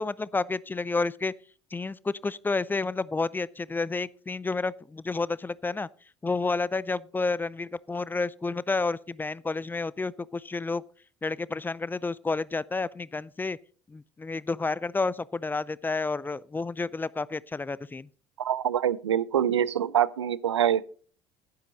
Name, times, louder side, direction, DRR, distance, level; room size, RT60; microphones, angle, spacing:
voice 1, 0.0-1.3 1.7-5.9 6.2-10.8 11.2-13.6 13.9-18.1, left 3 dB, 15° left, 0.4 m, -30 dB
voice 2, 18.4-20.9, right 10 dB, 80° right, 0.4 m, -25 dB
10.5 x 10.0 x 4.0 m
figure-of-eight pair, 60°, 14 cm